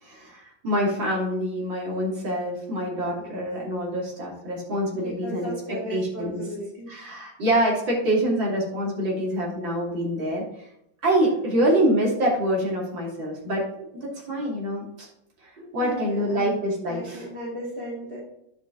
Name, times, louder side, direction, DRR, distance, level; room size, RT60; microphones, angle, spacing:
voice 1, 0.0-6.4 6.9-10.4 11.0-15.1 15.4-17.3, right 1 dB, 70° right, -3 dB, 3.4 m, -26 dB
voice 2, 2.9-3.4 4.9-7.0 15.6-18.2, equal, 25° right, -9 dB, 3.4 m, -37 dB
11.5 x 5.2 x 3.9 m, 0.79 s
omnidirectional pair, 2.2 m